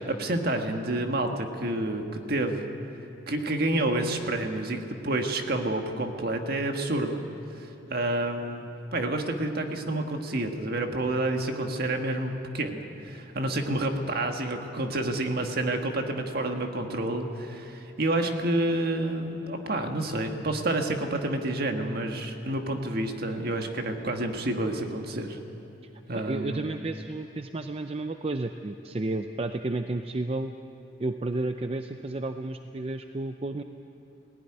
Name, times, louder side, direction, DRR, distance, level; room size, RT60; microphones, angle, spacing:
voice 1, 0.0-2.8 3.3-4.8 5.0-7.2 7.6-25.4 26.1-26.7, right 1 dB, 55° right, 4 dB, 1.6 m, -29 dB
voice 2, 26.1-30.5 31.0-33.6, right 2 dB, 30° right, 7 dB, 0.5 m, -32 dB
18.0 x 16.0 x 9.9 m, 2.8 s
head